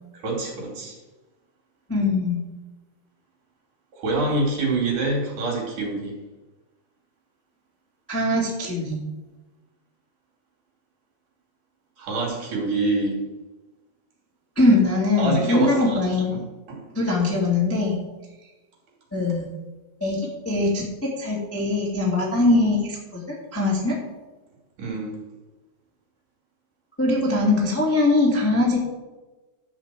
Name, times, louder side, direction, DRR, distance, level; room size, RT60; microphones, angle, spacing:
voice 1, 0.1-1.0 3.9-6.2 12.0-13.2 15.2-16.0 16.3-16.4 16.7-16.8 24.8-25.2, right 2 dB, 55° right, -1 dB, 4.2 m, -26 dB
voice 2, 1.9-2.4 8.1-9.0 14.5-16.3 16.9-18.0 19.1-19.5 20.0-20.8 21.2-23.9 27.0-28.8, left 2 dB, 5° left, -4 dB, 1.1 m, -21 dB
12.0 x 5.2 x 7.6 m, 1.1 s
omnidirectional pair, 4.7 m